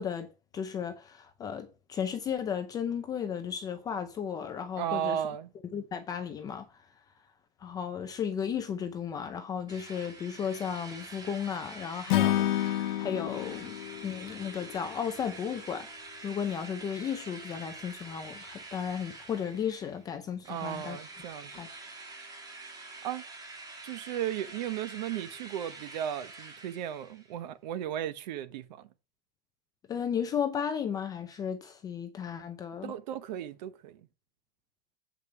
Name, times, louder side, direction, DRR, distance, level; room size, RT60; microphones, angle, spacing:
voice 1, 0.0-5.2 5.7-6.7 7.6-13.8 14.0-15.9 16.2-21.0 21.5-21.7 29.9-32.9, left 7 dB, 15° left, 0.5 m, -34 dB
voice 2, 4.8-5.5 20.5-21.6 23.0-23.2 23.8-28.9 32.8-34.0, right 10 dB, 45° right, 1.0 m, -35 dB
Drill, 9.7-20.1 20.4-27.3, right 3 dB, 10° right, 1.8 m, -47 dB
Acoustic guitar / Strum, 12.1-15.4, left 13 dB, 55° left, 0.8 m, -30 dB
8.3 x 5.2 x 6.0 m
supercardioid pair, 165°, 29 cm